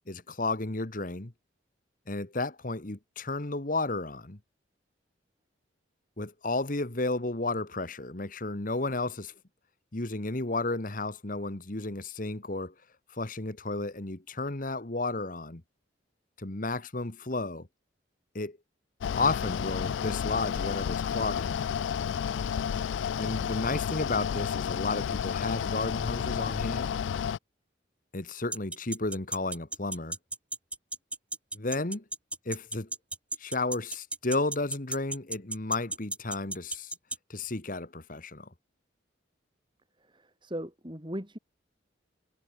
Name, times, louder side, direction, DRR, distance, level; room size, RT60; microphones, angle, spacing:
voice 1, 0.0-1.3 2.1-4.4 6.2-9.3 9.9-12.7 13.1-15.6 16.4-17.7 18.3-18.6 19.2-21.7 23.2-26.9 28.1-30.2 31.5-32.0 32.4-32.9 33.4-36.9 37.3-38.5, left 2 dB, 45° left, 1.6 m, -32 dB
Mechanical fan, 19.0-27.4, left 8 dB, 70° left, 0.3 m, -31 dB
sound 1, 28.5-37.2, right 2 dB, 5° right, 1.6 m, -34 dB
voice 2, 40.0-41.4, equal, 25° right, 6.1 m, -38 dB
head